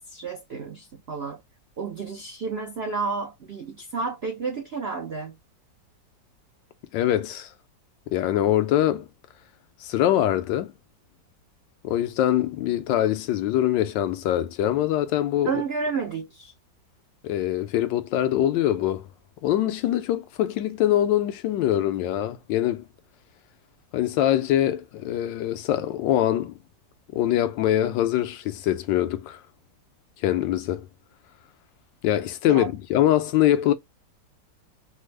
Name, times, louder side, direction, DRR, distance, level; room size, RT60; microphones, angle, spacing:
voice 1, 0.0-1.4 1.8-5.4 15.4-16.5 32.5-32.7, right 5 dB, 70° right, 0.5 m, -31 dB
voice 2, 6.9-7.5 8.1-9.1 9.8-10.7 11.8-15.5 17.2-19.1 19.4-22.8 23.9-26.5 27.1-29.4 30.2-30.9 32.0-33.7, left 12 dB, 90° left, 1.3 m, -23 dB
3.4 x 2.0 x 3.1 m
omnidirectional pair, 1.9 m